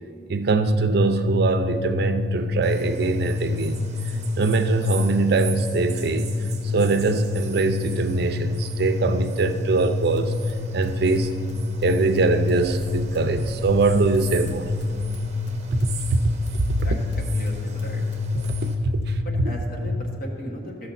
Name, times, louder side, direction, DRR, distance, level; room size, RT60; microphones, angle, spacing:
voice 1, 0.3-3.8 4.4-6.3 6.6-10.3 10.7-11.3 11.8-14.7 15.8-16.2 16.5-16.6 18.3-18.4 19.1-19.5, right 3 dB, 60° right, 8 dB, 0.5 m, -22 dB
sound 1, 0.6-20.2, left 3 dB, 30° left, 0.5 m, -28 dB
sound 2, 2.6-18.7, right 5 dB, 40° right, 1.0 m, -41 dB
sound 3, 10.1-13.5 13.8-17.5 17.8-18.2 18.4-18.8, equal, 80° left, 1.3 m, -47 dB
voice 2, 16.8-18.0 19.2-20.9, equal, 50° left, 0 dB, 1.5 m, -37 dB
14.5 x 6.3 x 4.1 m, 2.3 s
head